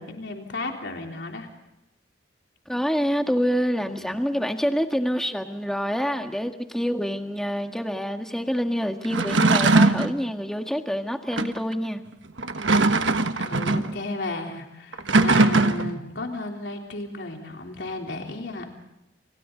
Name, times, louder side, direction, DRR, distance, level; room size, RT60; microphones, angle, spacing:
voice 1, 0.0-1.5 3.7-4.2 13.4-18.7, left 2 dB, 70° left, 1 dB, 3.6 m, -34 dB
voice 2, 2.7-12.0, equal, 5° left, 4 dB, 1.7 m, -26 dB
sound 1, 9.0-10.2 11.3-11.6 12.4-13.9 14.9-16.0, right 3 dB, 80° right, 1.3 m, -20 dB
30.0 x 27.5 x 4.0 m, 0.89 s
head